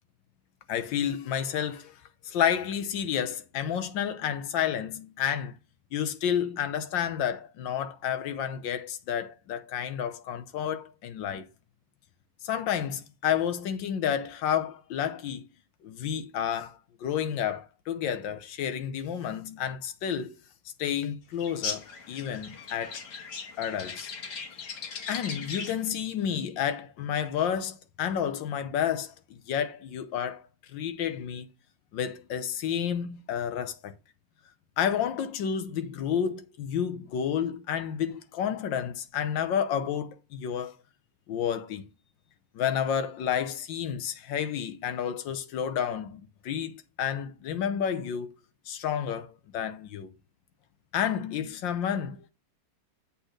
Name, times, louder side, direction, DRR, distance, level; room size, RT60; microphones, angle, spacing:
voice 1, 0.7-1.9 2.2-5.5 5.9-11.5 12.4-15.4 15.8-20.4 20.8-23.0 23.6-24.1 25.1-29.1 29.5-31.5 31.9-33.9 34.8-40.7 41.3-41.8 42.5-48.3 48.7-50.1 50.9-52.3, left 8 dB, 85° left, 1.5 m, -30 dB
sound 1, 21.4-25.9, left 5 dB, 65° left, 1.8 m, -38 dB
8.1 x 4.3 x 6.3 m
omnidirectional pair, 2.0 m